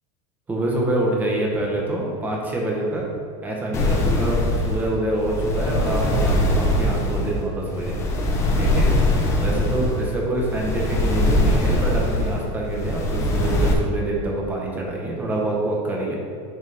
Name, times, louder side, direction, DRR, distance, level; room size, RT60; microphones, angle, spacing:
voice 1, 0.5-3.0 3.4-7.9 8.6-8.9 9.4-16.2, right 1 dB, 10° right, -2 dB, 0.9 m, -26 dB
sound 1, 3.7-13.7, left 1 dB, 15° left, 0.7 m, -22 dB
10.5 x 4.0 x 3.4 m, 2.6 s
supercardioid pair, 180°, 17 cm